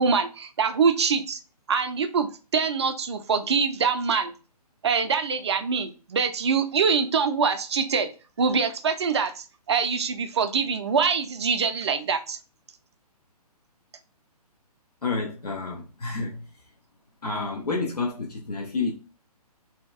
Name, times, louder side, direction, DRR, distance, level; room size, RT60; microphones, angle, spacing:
voice 1, 0.0-1.4 1.7-4.3 4.8-8.1 8.4-12.4, right 5 dB, 45° right, 0.4 m, -24 dB
voice 2, 15.0-16.4 17.2-18.9, left 3 dB, 75° left, 0.6 m, -29 dB
2.7 x 2.2 x 2.3 m
figure-of-eight pair, 135°, 20 cm